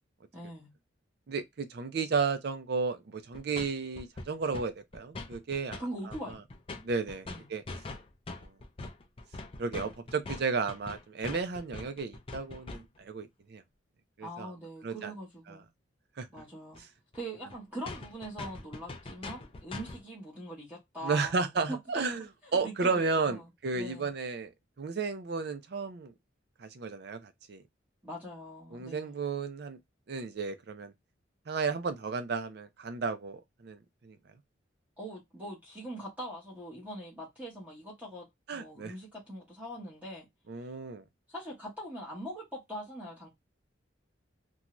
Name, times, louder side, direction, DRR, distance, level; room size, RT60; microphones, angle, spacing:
voice 1, 0.3-0.7 5.8-6.4 7.3-7.5 14.2-15.7 16.3-16.8 17.1-21.8 22.4-23.5 23.7-24.1 28.0-29.2 35.0-40.3 41.3-43.3, right 1 dB, 10° right, 0.9 m, -42 dB
voice 2, 1.3-6.4 6.8-7.6 8.4-8.5 9.6-13.6 14.2-14.5 14.8-15.1 16.2-16.3 21.0-22.2 22.5-24.5 24.8-26.1 26.6-27.6 28.7-29.8 30.1-30.9 31.5-34.2 38.5-38.9 40.5-41.0, right 4 dB, 55° right, 0.4 m, -33 dB
sound 1, 3.3-3.7 3.9-4.7 4.9-5.8 6.1-13.0 16.4-16.5 16.7-16.8 17.1-17.2 17.5-17.6 17.8-20.0, left 2 dB, 30° left, 0.4 m, -42 dB
2.6 x 2.2 x 2.9 m
head